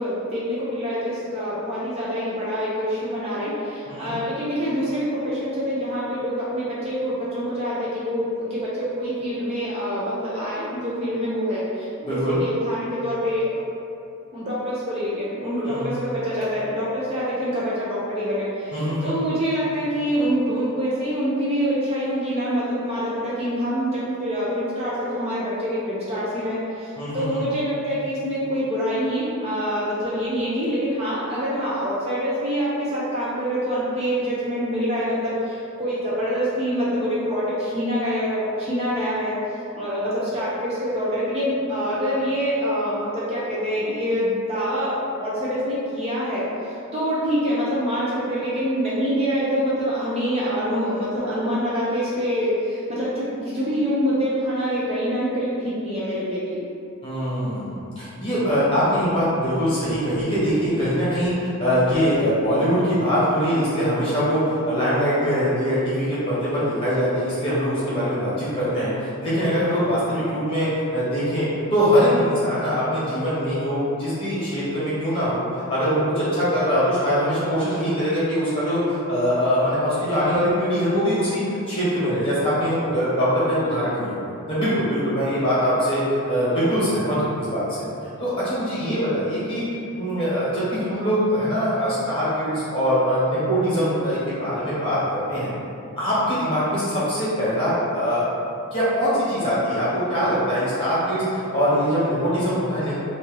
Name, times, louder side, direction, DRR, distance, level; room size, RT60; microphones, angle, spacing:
voice 1, 0.0-13.5 14.3-39.3 39.8-46.4 46.9-56.6, equal, 25° right, -9 dB, 0.5 m, -25 dB
voice 2, 12.0-12.4 15.6-15.8 18.7-19.1 27.0-27.5 57.0-84.2 84.5-87.6 88.2-89.6 89.9-95.5 96.0-98.3 98.7-103.0, equal, 25° left, -11 dB, 1.2 m, -22 dB
2.7 x 2.7 x 3.8 m, 2.6 s
head